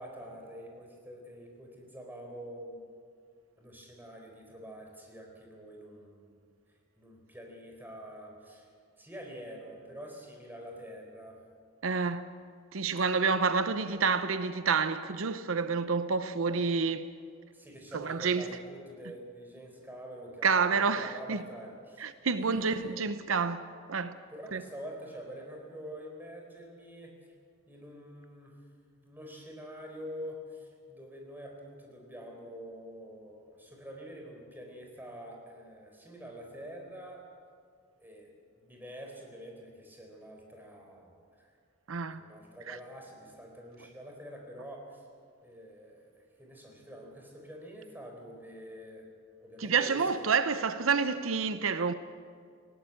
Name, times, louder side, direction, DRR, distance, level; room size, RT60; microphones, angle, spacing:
voice 1, 0.0-2.8 3.6-6.3 7.0-8.7 9.0-11.4 17.5-22.1 22.3-23.1 24.3-27.2 27.7-28.6 29.0-37.2 38.0-38.3 38.6-41.5 42.1-45.1 45.4-46.1 46.4-49.0 49.4-50.1, equal, 10° right, 4.2 m, -46 dB
voice 2, 11.8-12.2 12.7-17.1 17.9-18.5 20.4-21.4 22.0-23.6 23.9-24.1 24.5-24.6 41.9-42.2 42.7-42.8 49.6-51.9, right 5 dB, 85° right, 0.8 m, -28 dB
19.0 x 17.5 x 8.9 m
head